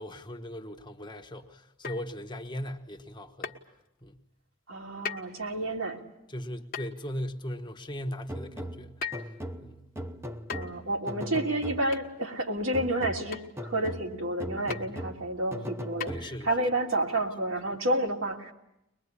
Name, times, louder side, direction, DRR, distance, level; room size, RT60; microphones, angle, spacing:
voice 1, 0.0-3.6 4.0-4.2 6.3-9.0 9.6-9.9 16.0-16.5, equal, 20° left, 1.2 m, -38 dB
sound 1, 1.8-2.2 3.4-3.6 5.0-5.3 6.7-7.0 9.0-9.4 10.5-10.8 11.9-12.1 13.3-13.5 14.7-14.9 16.0-16.1, left 6 dB, 45° left, 1.3 m, -37 dB
voice 2, 4.7-6.0 10.5-18.5, right 1 dB, 75° right, 3.2 m, -30 dB
sound 2, 8.3-12.2 12.7-16.6, equal, 10° right, 0.9 m, -39 dB
23.0 x 21.0 x 9.7 m
head